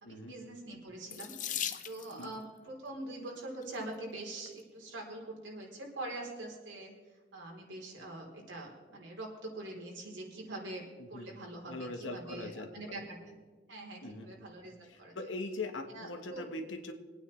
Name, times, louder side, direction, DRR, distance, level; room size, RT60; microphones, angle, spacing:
voice 1, 0.0-1.3 1.8-6.9 7.3-10.8 11.1-13.4 13.7-15.1 15.9-16.5, right 2 dB, 70° right, -1 dB, 3.7 m, -44 dB
Water tap faucet / Sink (filling or washing), 1.1-2.3 3.4-3.8 4.5-4.6 4.9-5.0, left 9 dB, 45° left, 0.6 m, -39 dB
voice 2, 11.0-11.3 11.7-12.7 13.0-13.1 14.0-14.3 14.8-16.9, left 2 dB, 85° left, 5 dB, 1.3 m, -41 dB
25.0 x 9.2 x 3.3 m, 1.5 s
head